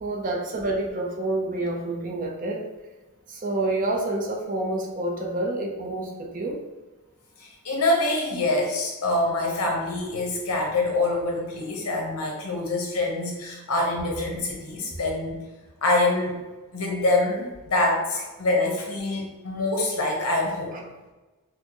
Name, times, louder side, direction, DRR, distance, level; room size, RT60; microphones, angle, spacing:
voice 1, 0.0-2.7 3.3-6.6 20.7-20.8, right 2 dB, 35° right, 0 dB, 0.6 m, -28 dB
voice 2, 7.4-15.4 15.8-16.4 16.7-20.8, left 2 dB, 80° left, 0 dB, 0.9 m, -25 dB
4.3 x 2.1 x 2.9 m, 1.2 s
head